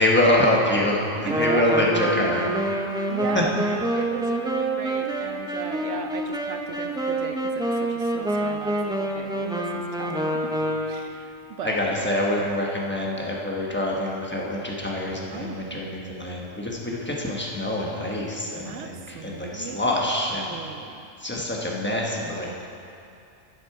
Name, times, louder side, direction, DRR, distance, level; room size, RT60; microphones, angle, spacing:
voice 1, 0.0-2.4 3.3-3.4 11.6-20.6 21.2-22.5, left 1 dB, 10° left, -3 dB, 1.1 m, -25 dB
voice 2, 1.2-2.5 3.1-3.5 3.9-11.8 15.3-15.7 18.6-20.0 20.4-21.1, right 6 dB, 70° right, 6 dB, 0.9 m, -36 dB
Wind instrument woodwind instrument, 1.3-11.2, right 1 dB, 5° right, 0.3 m, -27 dB
11.5 x 6.2 x 4.7 m, 2.6 s
omnidirectional pair, 1.3 m